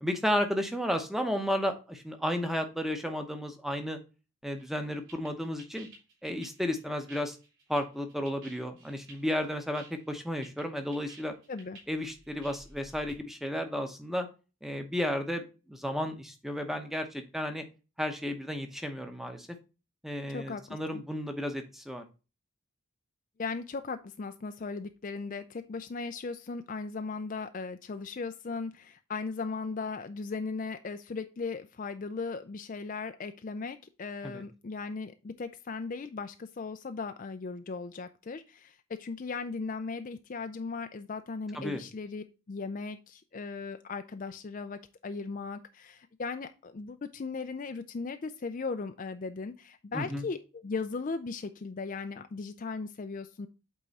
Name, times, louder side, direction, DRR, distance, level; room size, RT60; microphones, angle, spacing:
voice 1, 0.0-4.0 4.4-5.9 6.2-7.4 7.7-11.3 11.9-14.3 14.6-17.6 18.0-19.5 20.0-22.0 34.2-34.4 41.5-41.8 49.9-50.2, equal, ahead, 6 dB, 0.8 m, -33 dB
sound 1, 4.6-13.2, right 2 dB, 60° right, 3.0 m, -54 dB
voice 2, 20.3-21.0 23.4-53.5, left 4 dB, 35° left, 8 dB, 0.4 m, -37 dB
8.4 x 3.6 x 4.1 m, 0.31 s
head